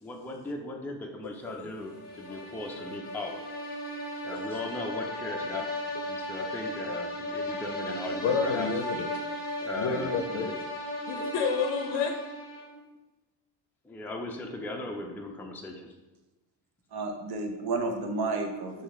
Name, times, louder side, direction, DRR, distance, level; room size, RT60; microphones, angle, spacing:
voice 1, 0.0-3.4 4.2-8.7 9.6-10.6 13.8-15.9, left 2 dB, 5° left, 1 dB, 0.4 m, -38 dB
sound 1, 1.9-12.8, left 1 dB, 20° left, 1.1 m, -36 dB
voice 2, 8.2-9.1 9.8-10.5 11.1-12.1 18.7-18.8, left 5 dB, 65° left, 4 dB, 0.6 m, -29 dB
voice 3, 16.9-18.8, right 3 dB, 55° right, 4 dB, 0.8 m, -31 dB
6.4 x 2.4 x 3.2 m, 1.0 s
cardioid pair, 90°, 46 cm